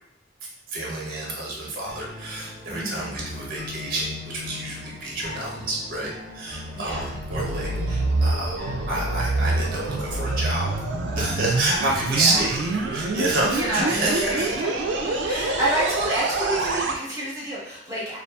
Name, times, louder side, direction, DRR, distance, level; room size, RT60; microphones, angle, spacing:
voice 1, 0.7-10.7 11.2-14.5, right 2 dB, 55° right, -4 dB, 0.7 m, -28 dB
sound 1, 1.8-14.8, left 3 dB, 10° left, 0.6 m, -40 dB
voice 2, 2.7-3.2 6.7-7.1 12.1-12.5 13.5-18.2, right 1 dB, 15° right, -9 dB, 1.0 m, -29 dB
sound 2, 6.9-17.0, right 2 dB, 80° right, 0.3 m, -26 dB
2.6 x 2.3 x 2.3 m, 0.83 s
head